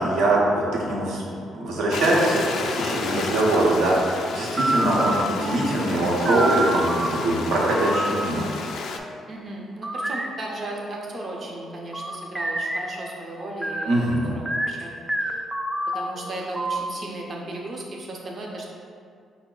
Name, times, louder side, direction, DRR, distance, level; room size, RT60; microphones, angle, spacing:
voice 1, 0.0-8.5 13.9-14.3, right 1 dB, 80° right, -4 dB, 0.8 m, -23 dB
Stream, 1.9-9.0, left 4 dB, 70° left, 0.3 m, -31 dB
voice 2, 3.0-3.3 4.8-5.1 9.3-14.9 15.2-15.4 15.9-18.7, right 1 dB, 45° right, -1 dB, 0.7 m, -36 dB
sound 1, 4.5-7.1 7.7-8.2 8.6-9.2 9.8-11.1 11.5-16.8, right 1 dB, 15° right, 0.3 m, -28 dB
4.9 x 2.1 x 3.7 m, 2.2 s
cardioid pair, 90°, 0 cm